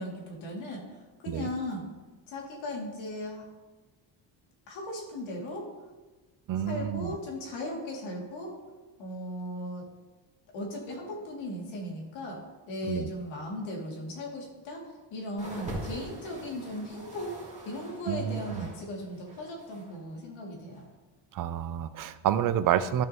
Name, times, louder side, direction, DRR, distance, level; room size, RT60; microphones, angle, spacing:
voice 1, 0.0-1.8 2.3-3.4 4.7-5.7 6.6-8.6 9.0-9.9 10.5-14.8 15.1-17.4 17.6-20.9, left 1 dB, 85° left, -1 dB, 2.7 m, -37 dB
voice 2, 6.5-7.1 12.9-13.1 18.1-18.7 21.3-23.1, right 10 dB, 45° right, 13 dB, 0.5 m, -29 dB
sound 1, 15.4-18.8 19.1-20.0 20.7-20.8, right 1 dB, 15° right, 2.1 m, -43 dB
13.0 x 6.2 x 3.0 m, 1.2 s
cardioid pair, 125°, 46 cm